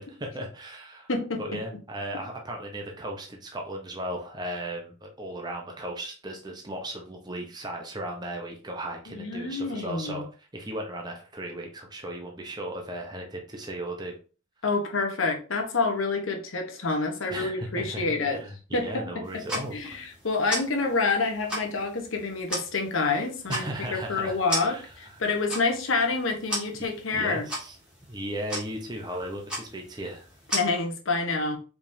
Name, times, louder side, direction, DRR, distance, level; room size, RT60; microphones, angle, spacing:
voice 1, 0.0-1.1 1.4-14.2 17.3-19.8 23.5-24.9 27.1-27.8 28.1-30.3, right 1 dB, 20° right, 1 dB, 0.7 m, -36 dB
voice 2, 1.1-1.6 9.1-10.2 14.6-18.4 18.7-27.5 30.5-31.6, left 3 dB, 75° left, 3 dB, 1.0 m, -28 dB
sound 1, 19.2-30.6, equal, 5° right, 1.6 m, -37 dB
4.8 x 3.5 x 2.7 m, 0.37 s
head